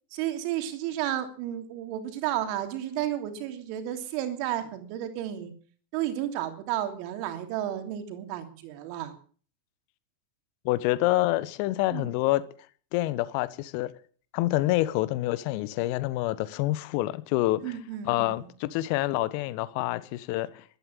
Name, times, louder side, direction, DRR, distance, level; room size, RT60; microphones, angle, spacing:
voice 1, 0.1-5.5 5.9-9.1 11.9-12.1 17.6-18.4, right 12 dB, 45° right, 2.9 m, -32 dB
voice 2, 10.6-12.4 12.9-13.9 14.3-17.6 18.0-20.6, left 17 dB, 45° left, 1.3 m, -27 dB
14.5 x 12.5 x 7.3 m
figure-of-eight pair, 90°, 0 cm